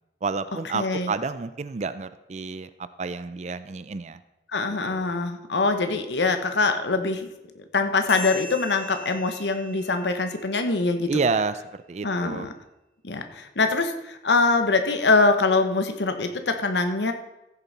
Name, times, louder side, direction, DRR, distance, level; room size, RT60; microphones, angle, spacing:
voice 1, 0.2-4.2 4.9-5.1 11.1-12.5, right 4 dB, 40° right, 13 dB, 0.4 m, -29 dB
voice 2, 0.7-1.1 4.5-7.3 7.7-11.2 12.0-12.5 13.0-17.1, left 3 dB, 85° left, 7 dB, 1.1 m, -23 dB
sound 1, 8.1-11.1, left 1 dB, 60° left, 3.7 m, -40 dB
15.0 x 6.9 x 4.1 m, 0.95 s
head